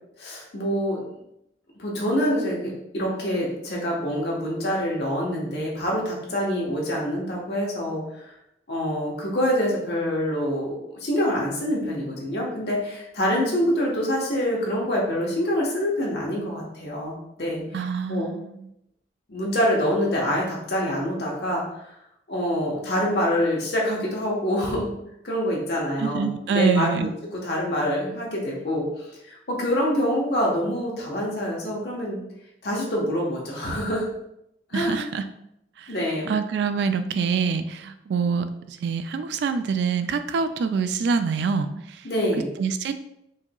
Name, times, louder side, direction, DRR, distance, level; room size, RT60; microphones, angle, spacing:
voice 1, 0.2-1.0 1.8-8.3 8.7-17.6 18.1-18.3 19.3-21.6 22.3-24.9 25.2-32.2 32.6-34.1 34.7-35.0 35.9-36.3 42.0-42.5, equal, 65° left, -3 dB, 1.0 m, -26 dB
voice 2, 17.7-18.7 26.0-27.1 34.7-35.3 35.8-35.9 36.3-42.1 42.6-42.9, right 5 dB, 75° right, 10 dB, 0.3 m, -26 dB
4.7 x 2.9 x 2.3 m, 0.79 s
head